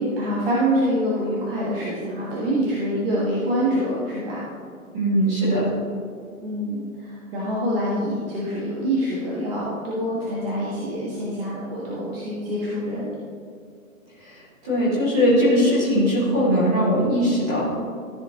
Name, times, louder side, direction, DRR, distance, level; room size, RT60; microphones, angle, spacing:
voice 1, 0.0-4.4 6.4-13.1, equal, 40° right, -6 dB, 1.6 m, -25 dB
voice 2, 4.9-5.7 14.2-17.7, equal, 5° right, -10 dB, 0.5 m, -20 dB
14.0 x 5.1 x 3.0 m, 2.2 s
figure-of-eight pair, 135°, 43 cm